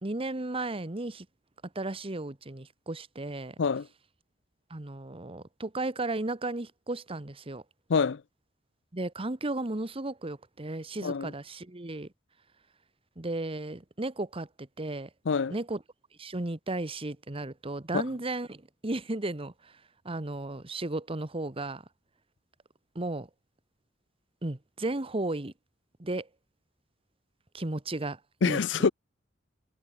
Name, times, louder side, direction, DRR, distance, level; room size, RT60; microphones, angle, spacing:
voice 1, 0.0-1.3 1.7-3.5 4.7-7.6 8.9-12.1 13.2-15.1 15.5-15.8 16.2-19.8 20.0-21.8 22.9-23.3 24.4-25.5 26.0-26.3 27.5-28.6, right 2 dB, 30° right, 1.2 m, -34 dB
voice 2, 7.9-8.2 11.0-11.3 15.3-15.5 17.9-18.0 28.4-28.9, left 5 dB, 70° left, 0.5 m, -26 dB
head